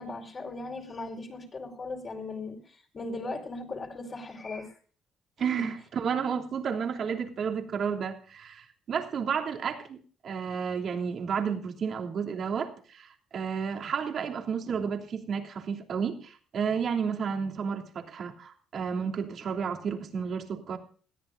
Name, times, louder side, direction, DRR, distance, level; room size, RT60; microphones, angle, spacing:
voice 1, 0.0-4.7 5.6-5.7, left 3 dB, 40° left, 4.8 m, -38 dB
voice 2, 5.4-10.0 10.2-20.8, right 6 dB, 55° right, 3.1 m, -31 dB
20.5 x 14.0 x 2.7 m
supercardioid pair, 80°, 0 cm